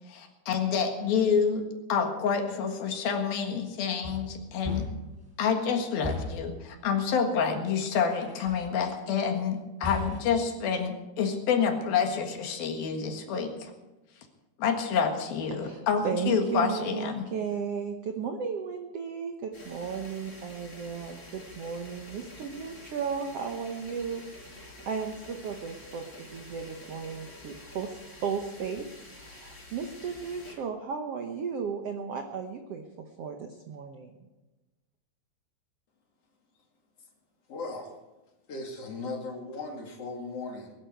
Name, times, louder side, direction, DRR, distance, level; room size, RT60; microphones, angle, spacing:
voice 1, 0.1-4.9 5.4-13.7 14.6-17.3, left 6 dB, 75° left, 4 dB, 3.4 m, -28 dB
sound 1, 4.0-5.2 6.0-6.6 8.2-8.7 9.8-10.4, left 2 dB, 5° right, 4.1 m, -36 dB
voice 2, 15.6-28.9 29.1-32.8 33.2-34.2, right 6 dB, 80° right, 4 dB, 1.4 m, -35 dB
sound 2, 19.5-30.5, left 1 dB, 20° left, 5.6 m, -48 dB
voice 3, 37.5-37.9 38.5-40.7, left 3 dB, 45° left, 1 dB, 3.1 m, -37 dB
21.0 x 11.5 x 4.6 m, 1.1 s
omnidirectional pair, 4.3 m